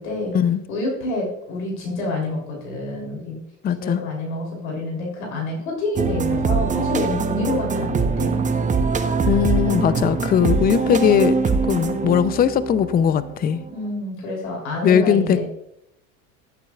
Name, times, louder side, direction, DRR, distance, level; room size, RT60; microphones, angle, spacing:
voice 1, 0.0-0.4 0.7-3.4 3.7-8.4 9.9-10.0 13.7-15.5, left 1 dB, 90° left, -1 dB, 3.2 m, -28 dB
voice 2, 3.6-4.0 9.3-11.4 11.7-13.6 14.8-15.4, left 9 dB, 25° left, 15 dB, 0.5 m, -19 dB
sound 1, 6.0-13.7, right 4 dB, 20° right, 0.8 m, -23 dB
16.0 x 8.3 x 2.3 m, 0.78 s
hypercardioid pair, 90°, 39 cm